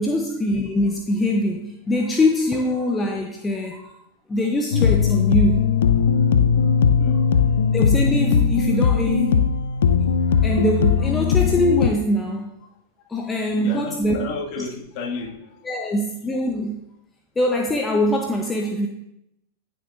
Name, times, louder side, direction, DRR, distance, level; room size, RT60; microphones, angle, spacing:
voice 1, 0.0-3.9 4.3-5.6 7.7-9.6 10.0-12.5 13.1-14.2 15.6-16.8 17.4-18.9, left 1 dB, 15° left, 2 dB, 0.8 m, -23 dB
sound 1, 4.7-11.9, left 6 dB, 65° left, 0.5 m, -19 dB
voice 2, 7.0-7.5 13.2-15.9, left 4 dB, 45° left, 2 dB, 2.0 m, -33 dB
13.0 x 6.7 x 2.6 m, 0.83 s
figure-of-eight pair, 90°, 0 cm